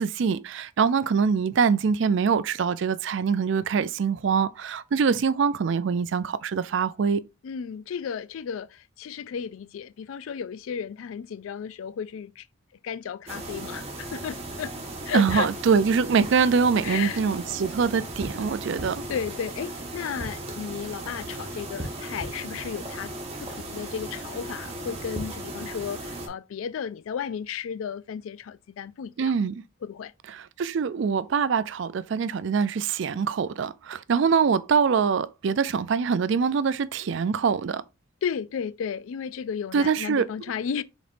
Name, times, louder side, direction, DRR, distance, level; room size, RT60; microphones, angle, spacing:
voice 1, 0.0-7.2 15.1-19.0 29.2-29.6 30.3-37.8 39.7-40.2, right 6 dB, 60° right, 0.4 m, -24 dB
voice 2, 7.4-12.4 12.8-14.7 15.0-15.5 16.8-17.2 19.1-23.1 23.4-29.3 29.8-30.1 38.2-40.8, left 7 dB, 80° left, 0.3 m, -34 dB
sound 1, 13.3-26.3, right 1 dB, 30° right, 1.1 m, -36 dB
5.1 x 4.0 x 2.5 m
head